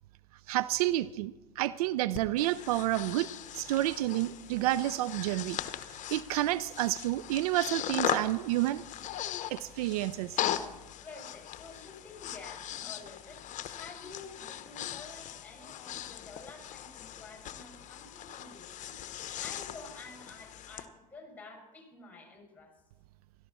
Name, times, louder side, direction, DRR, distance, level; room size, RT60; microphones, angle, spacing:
voice 1, 0.5-3.3 3.5-5.6 5.9-8.8 9.5-10.4, right 15 dB, 65° right, 17 dB, 0.5 m, -30 dB
Breathing, 2.1-20.9, left 11 dB, 35° left, 1.0 m, -39 dB
voice 2, 11.0-13.4 13.8-18.9 19.4-22.7, left 3 dB, 10° left, 3 dB, 5.8 m, -50 dB
16.5 x 13.5 x 4.3 m, 1.1 s
hypercardioid pair, 90°, 21 cm